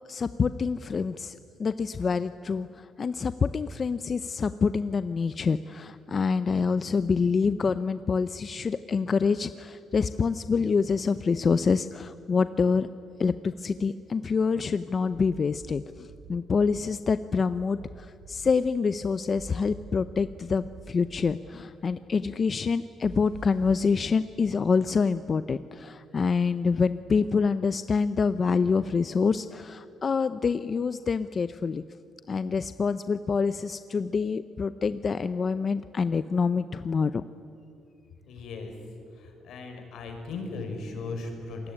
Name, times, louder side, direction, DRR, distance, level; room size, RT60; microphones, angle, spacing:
voice 1, 0.1-12.9 13.2-31.8 32.3-37.2, left 5 dB, 35° left, 12 dB, 0.6 m, -26 dB
sound 1, 15.1-15.8 16.1-16.7 17.5-18.4 19.3-20.3 20.6-21.3 23.0-23.8, right 4 dB, 90° right, 6.3 m, -46 dB
voice 2, 38.3-38.7 39.2-41.7, left 3 dB, 75° left, 4 dB, 5.7 m, -37 dB
27.5 x 20.5 x 10.0 m, 2.6 s
cardioid pair, 130°, 0 cm